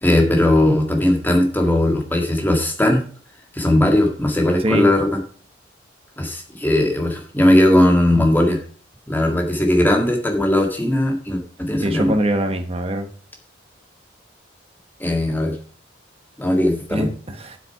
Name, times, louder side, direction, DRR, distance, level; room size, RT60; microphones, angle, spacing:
voice 1, 0.0-3.0 3.5-5.2 6.2-8.6 9.1-12.1 15.0-15.6 16.4-17.1, left 1 dB, 10° left, 2 dB, 1.9 m, -18 dB
voice 2, 11.8-13.1 16.9-17.6, equal, 30° right, 6 dB, 1.1 m, -23 dB
9.4 x 8.0 x 4.7 m, 0.42 s
head